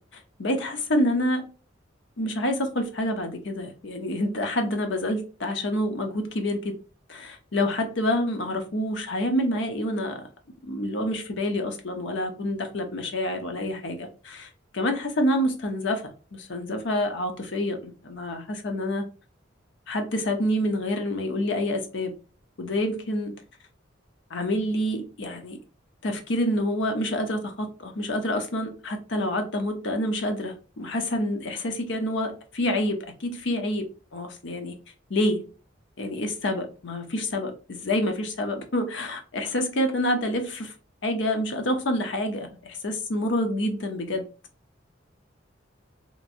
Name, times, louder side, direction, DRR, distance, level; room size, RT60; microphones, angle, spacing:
voice 1, 0.0-1.5 2.2-6.8 7.1-10.2 10.6-19.0 19.9-22.1 22.6-23.4 24.3-25.6 26.0-34.7 35.1-35.4 36.0-40.7 41.0-44.2, left 1 dB, 70° left, 0.7 m, -27 dB
3.0 x 2.6 x 2.5 m
head